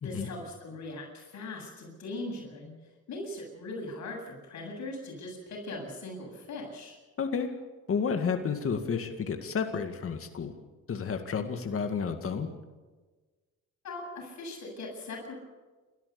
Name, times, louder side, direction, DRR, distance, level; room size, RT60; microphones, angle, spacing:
voice 1, 0.0-2.7 3.1-7.0 13.8-15.3, left 2 dB, 65° left, 0 dB, 7.8 m, -40 dB
voice 2, 7.2-7.5 7.9-10.5 10.9-12.5, left 6 dB, 45° left, 6 dB, 2.1 m, -31 dB
29.0 x 14.0 x 7.0 m, 1.3 s
cardioid pair, 90°, 30 cm